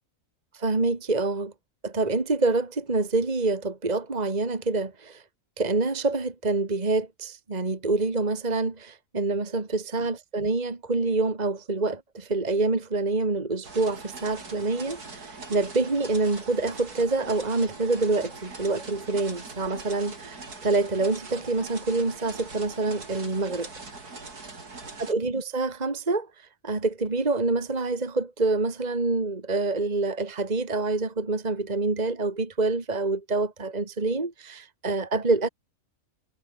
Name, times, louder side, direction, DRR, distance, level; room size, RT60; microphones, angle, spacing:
voice 1, 0.5-1.5 1.8-5.2 5.6-23.7 25.0-35.5, right 3 dB, 25° right, 2.1 m, -26 dB
sound 1, 13.6-25.1, right 3 dB, 85° right, 4.4 m, -42 dB
omnidirectional pair, 1.6 m